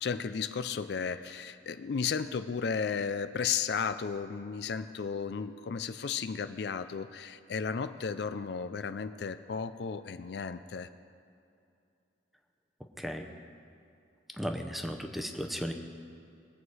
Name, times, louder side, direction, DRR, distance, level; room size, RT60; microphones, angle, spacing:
voice 1, 0.0-10.9, left 6 dB, 60° left, 11 dB, 0.4 m, -34 dB
voice 2, 14.4-15.7, equal, ahead, 4 dB, 0.7 m, -35 dB
21.0 x 8.0 x 4.8 m, 2.6 s
head